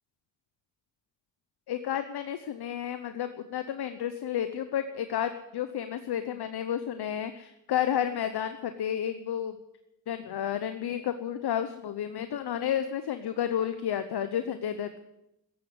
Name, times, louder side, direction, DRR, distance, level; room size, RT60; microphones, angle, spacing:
voice 1, 1.7-9.6 10.1-15.0, left 9 dB, 80° left, 10 dB, 0.9 m, -31 dB
14.5 x 11.0 x 8.2 m, 0.87 s
supercardioid pair, 40°, 38 cm